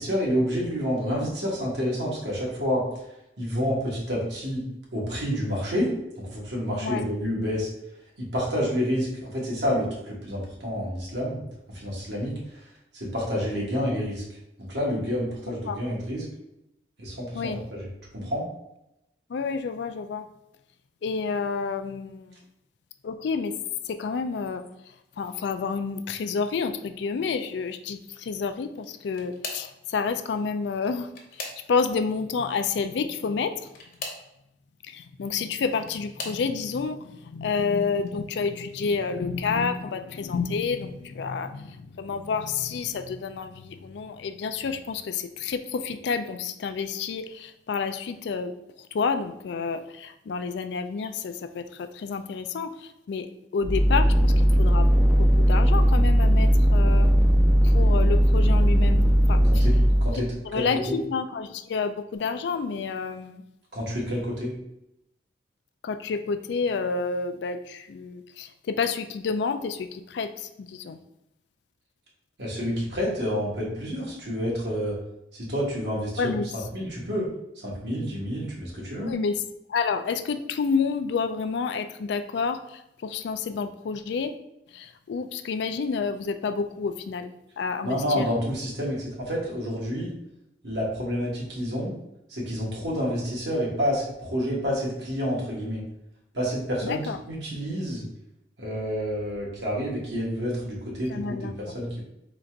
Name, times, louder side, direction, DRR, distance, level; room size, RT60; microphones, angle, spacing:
voice 1, 0.0-2.8 3.4-4.6 4.9-7.7 8.2-11.4 11.7-12.7 12.9-14.2 14.6-16.2 17.0-18.4 59.4-61.0 63.7-64.5 72.4-75.0 75.3-76.3 76.7-77.3 77.5-79.1 87.8-90.1 90.6-91.9 92.3-95.8 96.3-97.0 97.3-98.0 98.6-101.5 101.7-102.0, equal, 70° right, -3 dB, 1.4 m, -29 dB
voice 2, 15.5-15.8 17.3-17.6 19.3-20.3 21.0-22.4 23.0-23.5 23.8-33.7 34.8-48.5 48.8-54.9 55.2-57.1 57.6-59.7 60.5-63.4 65.8-71.0 76.2-76.5 79.0-79.4 79.7-84.4 84.7-88.3 96.8-97.2 101.1-101.5, left 5 dB, 70° left, 9 dB, 0.3 m, -29 dB
sound 1, 28.7-29.8 30.7-32.0 33.6-34.3 35.4-36.5 37.2-37.6 38.0-38.1 39.4-39.5, left 3 dB, 55° left, 0.9 m, -40 dB
sound 2, 53.6-60.2, equal, 5° right, 0.4 m, -18 dB
3.9 x 2.5 x 4.4 m, 0.87 s
head